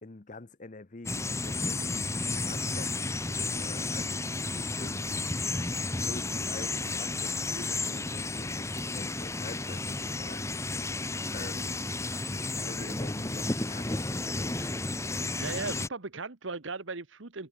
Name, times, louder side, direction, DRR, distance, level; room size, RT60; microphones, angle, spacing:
voice 1, 0.0-5.3 6.0-10.5 11.3-11.8 12.1-15.0, left 3 dB, 40° left, 0.8 m, -46 dB
sound 1, 1.1-15.9, left 3 dB, 15° left, 1.0 m, -32 dB
voice 2, 15.1-17.5, right 3 dB, 65° right, 1.3 m, -37 dB
head